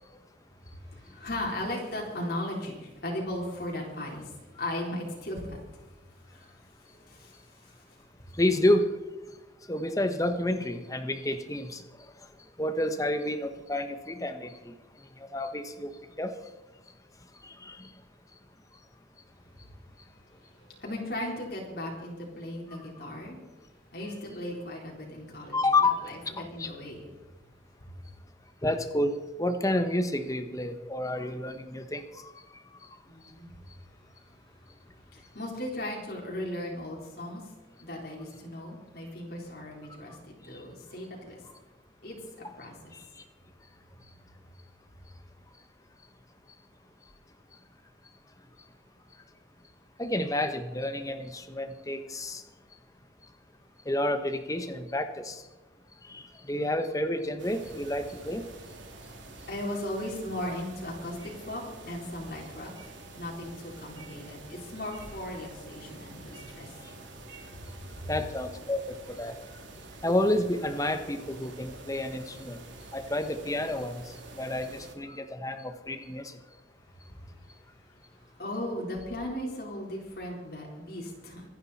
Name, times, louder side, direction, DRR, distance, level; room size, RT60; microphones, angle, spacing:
voice 1, 0.8-5.6 6.2-8.3 20.4-23.4 23.9-27.1 27.8-27.9 33.0-33.6 35.1-37.5 37.8-41.4 42.0-42.9 59.3-62.9 63.2-67.0 67.9-68.1 77.1-77.5 78.4-81.4, left 1 dB, 55° left, -2 dB, 4.1 m, -37 dB
voice 2, 8.4-8.9 9.7-11.8 12.6-14.7 15.3-15.9 16.2-16.3 17.4-17.9 25.5-26.0 26.6-26.7 28.6-29.1 29.4-32.3 50.0-52.4 53.9-55.4 56.1-58.4 68.1-69.3 70.0-72.6 72.9-74.0 74.3-76.4, left 1 dB, 20° left, 8 dB, 1.2 m, -29 dB
sound 1, 57.4-74.9, right 2 dB, 85° right, 2.8 m, -47 dB
25.5 x 10.5 x 4.3 m, 1.1 s
head